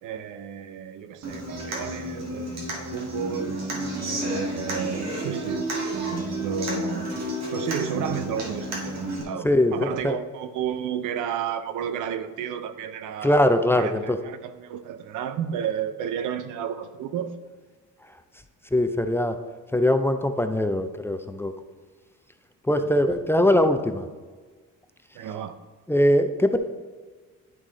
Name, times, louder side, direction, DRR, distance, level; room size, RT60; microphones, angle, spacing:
voice 1, 0.0-3.6 4.0-7.1 7.5-13.5 13.7-17.4 22.8-23.0 25.1-25.6, right 9 dB, 85° right, 0.6 m, -32 dB
Human voice / Acoustic guitar, 1.2-9.2, right 1 dB, 60° right, 1.8 m, -31 dB
voice 2, 9.4-10.1 13.2-14.2 18.7-19.4 19.7-21.5 22.7-24.1 25.9-26.6, left 1 dB, 10° left, 0.4 m, -21 dB
10.5 x 3.7 x 3.8 m
cardioid pair, 90°, 30 cm